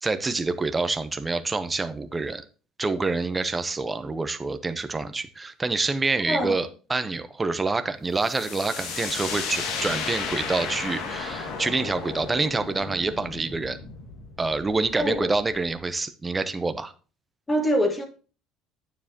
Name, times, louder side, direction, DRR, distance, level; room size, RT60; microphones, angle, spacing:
voice 1, 0.0-2.4 2.8-13.8 14.4-16.9, right 3 dB, 15° right, 0.8 m, -27 dB
voice 2, 6.2-6.6 14.9-15.3 17.5-18.1, equal, 15° left, 1.8 m, -25 dB
sound 1, 8.2-15.8, left 5 dB, 70° left, 2.1 m, -34 dB
9.3 x 7.3 x 2.9 m
cardioid pair, 115°, 0 cm